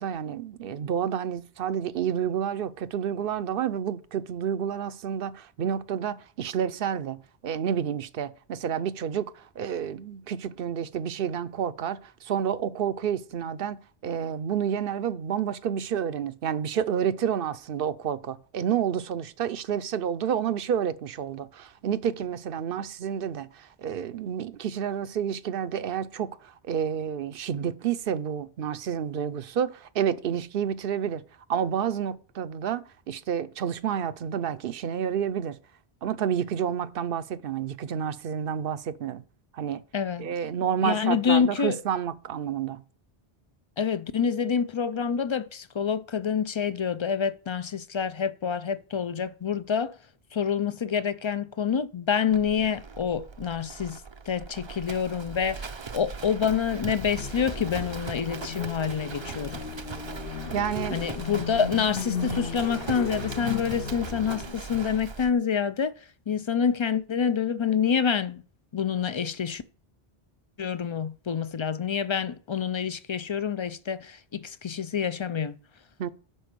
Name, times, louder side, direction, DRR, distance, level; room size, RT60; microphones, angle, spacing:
voice 1, 0.0-7.2 7.4-31.2 31.5-35.6 36.0-39.2 39.5-39.8 40.2-42.8 60.5-61.0 76.0-76.1, right 8 dB, 65° right, 0.8 m, -29 dB
voice 2, 39.9-40.3 40.8-41.8 43.8-49.9 50.3-54.0 54.3-55.7 55.9-59.6 60.9-65.9 66.3-68.4 68.7-69.6 70.6-75.6, left 7 dB, 45° left, 0.4 m, -27 dB
Livestock farm animals working animals, 52.3-65.3, right 5 dB, 35° right, 0.5 m, -39 dB
sound 1, 56.9-64.6, left 6 dB, 65° left, 1.0 m, -36 dB
11.0 x 4.5 x 6.7 m
omnidirectional pair, 1.0 m